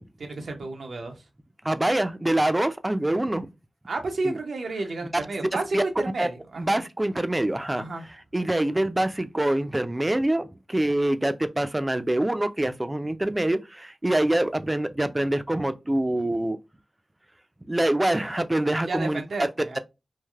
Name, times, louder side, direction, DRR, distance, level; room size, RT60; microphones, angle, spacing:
voice 1, 0.2-1.2 3.9-6.8 7.7-8.0 18.9-19.8, right 3 dB, 85° right, 0.6 m, -31 dB
voice 2, 1.6-3.5 4.2-4.4 5.7-5.8 6.2-6.3 6.6-7.8 8.3-16.6 17.7-19.5, right 1 dB, 25° right, 0.4 m, -25 dB
3.1 x 2.5 x 2.3 m
cardioid pair, 50°, 0 cm